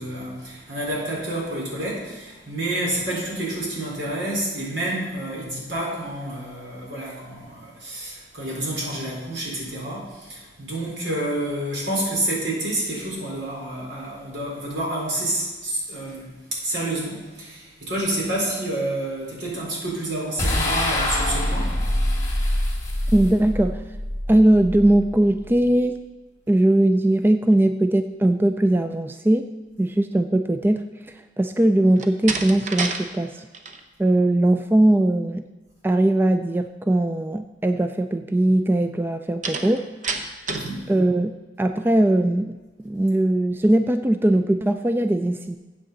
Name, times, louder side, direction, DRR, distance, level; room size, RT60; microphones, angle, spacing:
voice 1, 0.0-21.7 40.5-40.9, right 1 dB, 75° right, -4 dB, 4.2 m, -29 dB
sound 1, 20.4-25.7, left 1 dB, 20° left, 2.0 m, -25 dB
voice 2, 23.1-23.8 24.3-26.0 26.5-29.5 29.8-33.5 34.0-35.4 35.8-39.9 40.9-42.6 42.8-45.6, right 1 dB, 10° right, 8 dB, 0.3 m, -20 dB
Slam, 31.9-33.0 33.4-33.8 39.4-40.8, right 4 dB, 45° right, 0.9 m, -29 dB
13.5 x 8.3 x 4.0 m, 1.3 s
head